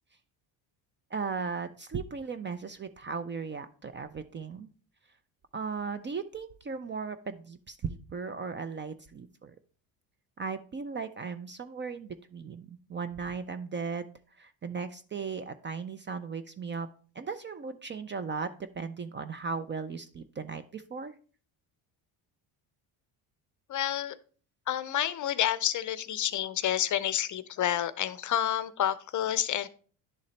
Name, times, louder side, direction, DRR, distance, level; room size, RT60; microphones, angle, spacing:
voice 1, 1.1-4.7 5.5-9.5 10.4-16.9 17.2-21.1, right 5 dB, 25° right, 11 dB, 0.4 m, -37 dB
voice 2, 23.7-24.2 24.7-29.7, left 11 dB, 40° left, 14 dB, 0.5 m, -29 dB
10.5 x 3.8 x 3.1 m, 0.41 s
cardioid pair, 90°, 45 cm